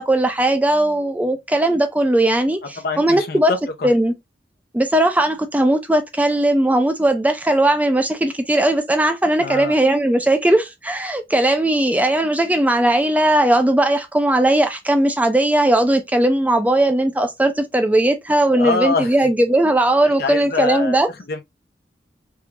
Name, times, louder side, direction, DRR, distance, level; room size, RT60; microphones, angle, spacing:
voice 1, 0.0-3.5 3.8-4.1 4.7-21.1, right 1 dB, 10° right, 0.4 m, -18 dB
voice 2, 2.8-3.9 9.4-9.7 18.6-19.1 20.0-21.0 21.3-21.4, left 4 dB, 55° left, 0.6 m, -24 dB
3.6 x 2.4 x 2.8 m
head